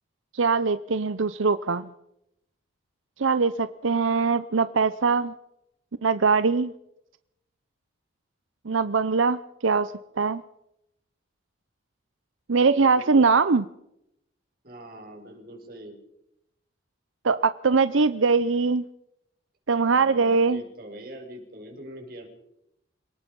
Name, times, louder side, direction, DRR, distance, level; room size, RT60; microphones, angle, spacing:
voice 1, 0.3-1.9 3.2-5.3 6.0-6.7 8.6-10.4 12.5-13.6 17.2-18.8 19.7-20.6, right 4 dB, 90° right, 13 dB, 0.7 m, -22 dB
voice 2, 12.5-13.3 14.6-16.0 19.9-22.3, right 1 dB, 50° right, 3 dB, 5.8 m, -43 dB
28.5 x 18.5 x 5.4 m, 0.84 s
head